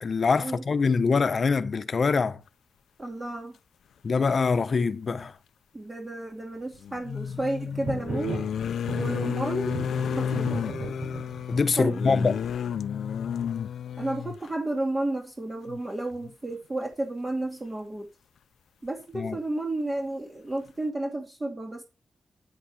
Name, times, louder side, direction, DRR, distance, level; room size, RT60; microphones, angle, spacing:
voice 1, 0.0-2.4 4.0-5.3 11.5-12.4 19.1-19.4, left 4 dB, 45° left, 1.1 m, -24 dB
voice 2, 3.0-3.5 5.7-8.4 8.9-9.9 10.2-10.5 11.8-12.3 14.0-18.1 18.8-21.8, right 2 dB, 20° right, 2.4 m, -32 dB
sound 1, 4.5-4.6 6.8-14.5 15.7-15.8 16.1-16.3, left 8 dB, 90° left, 0.7 m, -32 dB
sound 2, 7.9-8.5 8.9-11.6, right 3 dB, 60° right, 3.7 m, -35 dB
9.3 x 8.7 x 6.4 m
wide cardioid pair, 115°, 0 cm